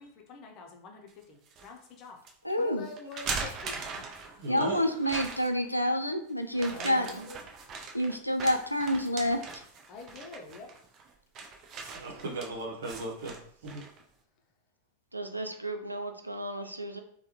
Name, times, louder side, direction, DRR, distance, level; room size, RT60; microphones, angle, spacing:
voice 1, 0.0-2.2 2.6-4.4 6.7-7.4 9.9-10.7, left 3 dB, 35° left, 2 dB, 0.6 m, -47 dB
sound 1, 1.1-1.7 2.2-2.3 3.0-4.5 5.0-5.7 6.5-14.0, right 4 dB, 35° right, 0.5 m, -40 dB
voice 2, 2.4-2.9 4.5-7.1 7.9-9.4, equal, 90° left, 5 dB, 0.3 m, -28 dB
voice 3, 4.4-5.0 5.3-5.4 11.9-13.4 13.6-13.8 16.6-16.7, right 2 dB, 60° right, -2 dB, 0.9 m, -37 dB
voice 4, 6.6-7.3 15.1-17.0, right 1 dB, 85° right, 6 dB, 0.3 m, -38 dB
3.4 x 2.2 x 2.9 m, 0.63 s
figure-of-eight pair, 90°, 0 cm